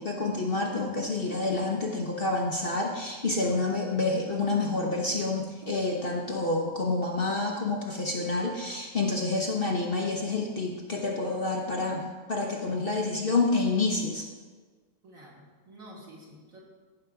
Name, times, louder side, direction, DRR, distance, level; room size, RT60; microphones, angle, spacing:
voice 1, 0.0-14.3, left 3 dB, 45° left, 0 dB, 0.9 m, -28 dB
voice 2, 15.0-16.6, right 1 dB, 60° right, -4 dB, 2.6 m, -49 dB
15.0 x 5.8 x 3.7 m, 1.4 s
omnidirectional pair, 1.6 m